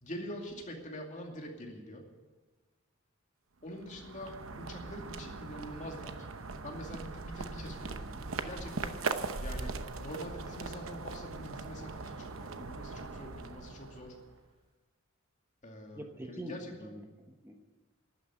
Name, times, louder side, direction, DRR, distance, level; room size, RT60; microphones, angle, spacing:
voice 1, 0.0-2.1 3.6-6.3 6.6-9.0 9.4-14.2 15.6-16.9, equal, 35° left, 1 dB, 2.5 m, -45 dB
sound 1, 3.7-14.4, right 3 dB, 80° right, 0.9 m, -40 dB
voice 2, 15.9-17.6, equal, 10° right, 4 dB, 1.0 m, -45 dB
12.5 x 9.4 x 9.7 m, 1.3 s
head